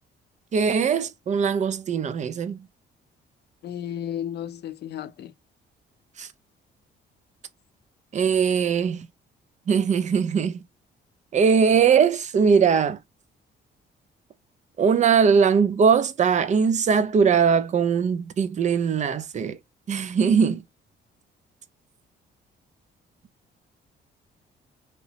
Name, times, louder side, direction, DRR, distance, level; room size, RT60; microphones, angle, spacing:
voice 1, 0.5-2.6 6.2-6.3 8.1-9.1 9.7-10.6 11.3-13.0 14.8-19.6 19.9-20.6, right 6 dB, 35° right, 0.4 m, -21 dB
voice 2, 3.6-5.3, left 10 dB, 55° left, 0.5 m, -33 dB
2.8 x 2.0 x 2.7 m
cardioid pair, 90°, 20 cm